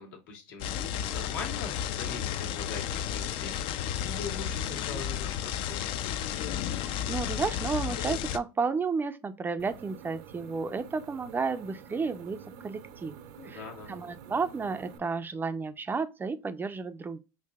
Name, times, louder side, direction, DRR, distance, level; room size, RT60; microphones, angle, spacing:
voice 1, 0.0-6.0 13.4-13.9, left 4 dB, 80° left, 1.5 m, -42 dB
sound 1, 0.6-8.4, left 10 dB, 55° left, 0.4 m, -32 dB
voice 2, 6.9-12.4 12.6-13.1 13.4-13.6 13.9-17.2, right 4 dB, 20° right, 0.4 m, -32 dB
sound 2, 9.6-15.0, right 8 dB, 65° right, 0.6 m, -48 dB
4.6 x 2.6 x 2.2 m
supercardioid pair, 105°, 11 cm